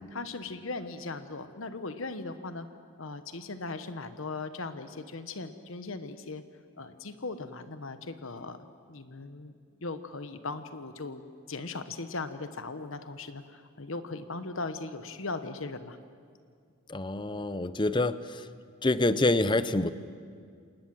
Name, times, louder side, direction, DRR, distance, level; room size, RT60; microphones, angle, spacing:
voice 1, 0.1-2.7 3.0-6.4 6.8-8.6 8.9-9.5 9.8-11.2 11.5-16.0, left 3 dB, 70° left, 10 dB, 1.1 m, -38 dB
voice 2, 16.9-18.4 18.8-19.9, left 2 dB, 20° left, 14 dB, 0.7 m, -26 dB
27.0 x 19.5 x 7.6 m, 2.2 s
head